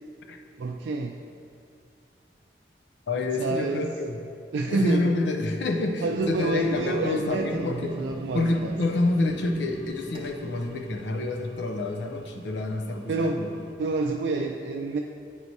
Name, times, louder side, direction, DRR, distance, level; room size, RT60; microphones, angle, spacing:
voice 1, 0.6-1.2 3.4-3.9 4.5-5.1 6.0-8.7 13.1-13.5 13.8-15.0, right 3 dB, 85° right, 1 dB, 0.3 m, -28 dB
voice 2, 3.1-4.2 4.7-8.0 8.3-13.5, left 2 dB, 80° left, 4 dB, 0.6 m, -28 dB
sound 1, 6.1-13.7, right 1 dB, 30° right, 0.5 m, -43 dB
8.7 x 4.6 x 2.7 m, 2.4 s
head